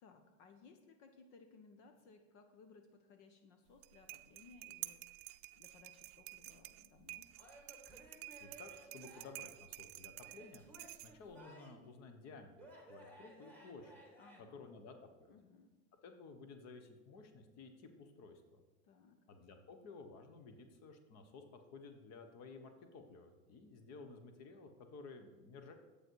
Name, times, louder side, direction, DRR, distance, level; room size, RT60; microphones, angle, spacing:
voice 1, 0.0-7.3 14.2-14.8 15.3-15.8 18.8-19.2, left 4 dB, 60° left, 7 dB, 1.2 m, -62 dB
sound 1, 3.7-11.4, right 19 dB, 60° right, 0.6 m, -51 dB
Male speech man speaking / Yell / Laughter, 7.4-9.5 10.2-11.9 12.6-14.4, right 1 dB, 5° left, 2.0 m, -58 dB
voice 2, 8.4-10.7 11.0-12.5 12.9-13.9 14.4-15.3 16.0-18.6 19.3-25.7, left 4 dB, 40° left, 7 dB, 1.3 m, -54 dB
11.0 x 8.4 x 4.7 m, 1.2 s
supercardioid pair, 145°, 41 cm